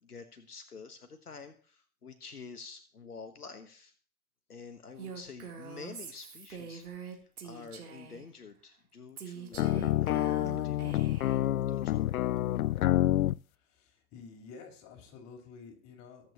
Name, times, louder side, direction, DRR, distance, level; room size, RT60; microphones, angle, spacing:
voice 1, 0.0-3.9 4.5-6.8 7.4-11.0 11.7-12.2, left 5 dB, 90° left, 7 dB, 1.5 m, -48 dB
Female speech woman speaking, 5.0-8.3 9.2-11.4, right 6 dB, 75° right, 3.5 m, -44 dB
sound 1, 9.5-13.4, left 14 dB, 70° left, 0.5 m, -28 dB
voice 2, 13.5-16.3, left 5 dB, 35° left, 2 dB, 5.7 m, -51 dB
23.0 x 9.0 x 3.0 m, 0.43 s
figure-of-eight pair, 100°, 44 cm